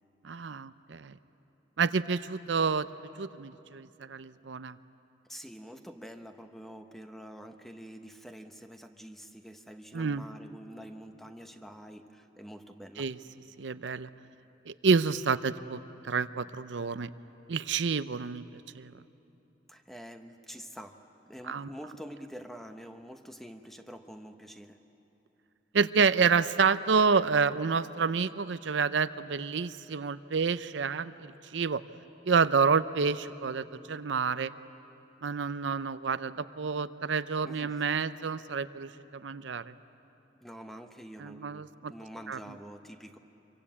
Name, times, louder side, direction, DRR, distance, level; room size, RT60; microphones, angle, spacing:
voice 1, 0.2-1.2 1.8-2.9 3.2-4.8 9.9-10.2 13.0-13.2 13.6-14.1 14.7-17.1 17.5-18.9 21.5-21.7 25.7-31.8 32.3-34.5 35.2-39.7 41.2-41.9 42.3-42.4, right 5 dB, 80° right, 13 dB, 0.6 m, -29 dB
voice 2, 5.2-13.1 19.7-24.8 37.4-37.8 40.4-43.2, equal, ahead, 6 dB, 1.0 m, -47 dB
25.5 x 23.0 x 8.6 m, 2.9 s
head